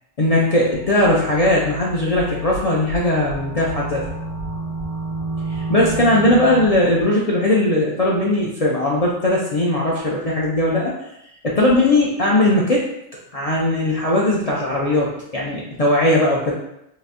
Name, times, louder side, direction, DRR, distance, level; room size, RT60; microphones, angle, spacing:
voice 1, 0.2-4.1 5.5-10.9 11.4-12.8 13.3-16.5, left 1 dB, 60° left, -4 dB, 0.3 m, -19 dB
sound 1, 0.7-7.0, right 2 dB, 35° right, 1.5 m, -30 dB
3.9 x 2.7 x 2.5 m, 0.79 s
omnidirectional pair, 1.3 m